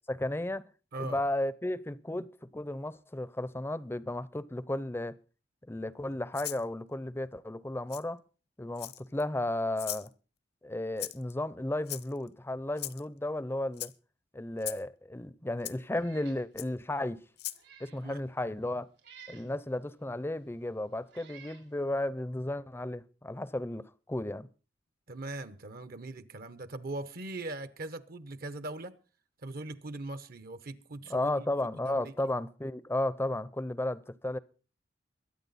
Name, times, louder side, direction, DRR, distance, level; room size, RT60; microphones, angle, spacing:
voice 1, 0.1-0.7 1.0-5.2 5.7-8.2 8.6-10.1 10.6-13.9 14.3-17.2 17.8-18.9 19.3-24.5 31.1-34.4, left 1 dB, 15° left, 0.6 m, -34 dB
voice 2, 0.9-1.2 18.0-18.2 25.1-28.9 29.4-31.5 31.9-32.1, right 2 dB, 55° right, 0.9 m, -40 dB
Rattle (instrument), 6.3-6.6 7.9-8.0 8.8-9.2 9.8-10.1 11.0-11.3 11.9-12.3 12.8-13.0 13.7-13.9 14.6-14.8 15.7-15.8 16.6-16.7 17.4-17.6, left 14 dB, 60° left, 0.8 m, -38 dB
Meow, 15.9-16.4 16.9-17.0 17.5-18.0 19.0-19.5 20.4-20.5 21.1-21.7, right 7 dB, 85° right, 5.2 m, -53 dB
23.0 x 8.8 x 4.1 m
head